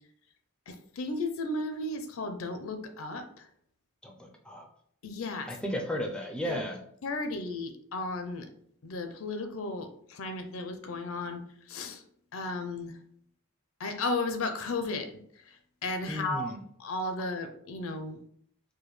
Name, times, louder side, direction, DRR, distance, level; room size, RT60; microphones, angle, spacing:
voice 1, 0.7-3.2 5.0-5.5 6.5-6.6 7.0-8.5 8.8-11.4 11.7-12.0 12.3-12.9 13.8-15.2 15.8-16.5 16.8-18.2, left 2 dB, 65° left, 7 dB, 0.5 m, -34 dB
voice 2, 4.0-4.6 5.5-6.8 16.1-16.6, equal, 5° left, 2 dB, 0.4 m, -34 dB
4.9 x 2.2 x 3.1 m, 0.65 s
head